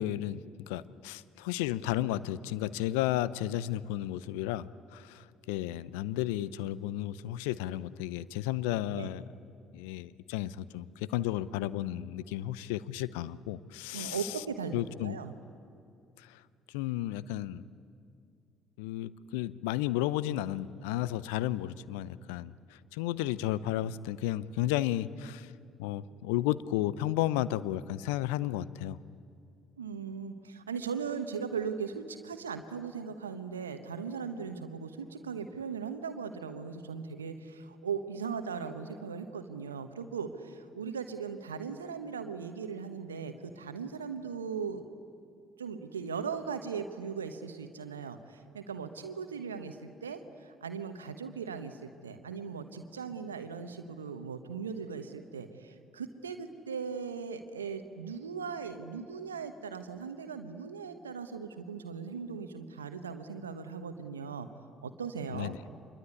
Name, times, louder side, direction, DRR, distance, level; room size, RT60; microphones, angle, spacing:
voice 1, 0.0-9.2 9.7-14.4 14.7-15.2 16.2-16.4 16.7-17.6 18.8-25.5 25.8-29.0 65.3-65.6, left 14 dB, 75° left, 18 dB, 0.6 m, -33 dB
voice 2, 13.9-15.3 29.8-44.8 45.6-64.5 64.8-65.5, right 6 dB, 90° right, 8 dB, 1.1 m, -38 dB
26.0 x 22.5 x 9.7 m, 2.3 s
hypercardioid pair, 50°, 0 cm